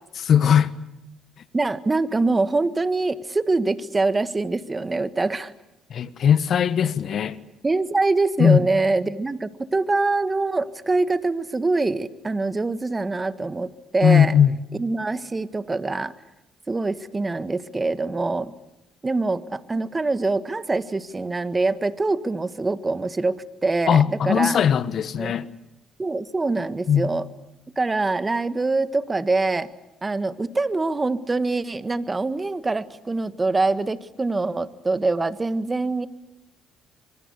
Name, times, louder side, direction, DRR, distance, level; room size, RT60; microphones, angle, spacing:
voice 1, 0.2-0.7 5.9-7.4 8.4-8.6 14.0-14.5 23.9-25.5 26.9-27.1, left 8 dB, 55° left, 1.3 m, -19 dB
voice 2, 1.5-5.5 7.6-14.4 14.8-16.1 16.7-18.5 19.0-24.6 25.2-25.3 26.0-27.2 27.8-29.7 30.0-36.1, right 3 dB, 25° right, 1.6 m, -24 dB
25.5 x 23.0 x 8.2 m
hypercardioid pair, 60°, 0 cm